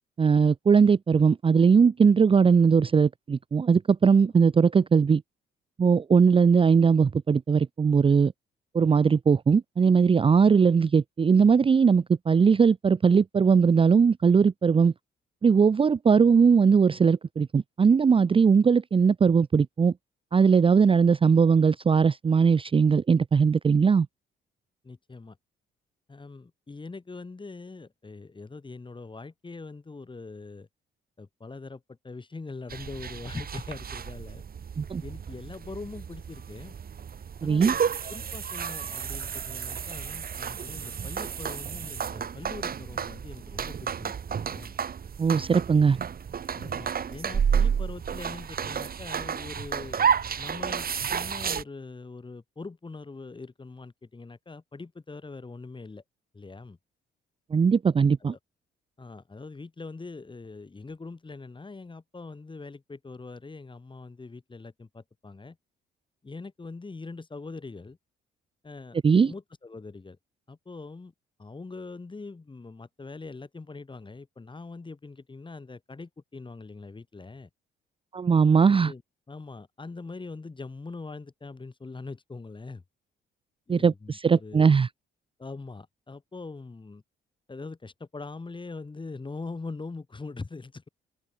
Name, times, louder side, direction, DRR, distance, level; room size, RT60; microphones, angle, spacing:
voice 1, 0.2-5.2 5.8-8.3 8.7-14.9 15.4-19.9 20.3-24.1 34.8-35.0 37.4-37.7 45.2-46.0 57.5-58.3 69.0-69.3 78.1-78.9 83.7-84.9, right 6 dB, 25° right, 0.6 m, -20 dB
voice 2, 24.8-25.4 26.1-30.7 31.2-34.4 35.0-36.8 37.4-37.8 38.1-44.8 46.6-50.0 50.4-56.0 56.3-56.8 58.2-58.4 59.0-65.6 66.2-68.0 68.6-69.0 69.3-70.2 70.5-71.1 71.4-77.5 78.6-79.0 79.3-82.8 83.7-84.8 85.4-87.0 87.5-90.9, left 3 dB, 25° left, 6.3 m, -42 dB
sound 1, 32.7-51.6, right 7 dB, 50° right, 3.5 m, -31 dB
cardioid pair, 90°, 20 cm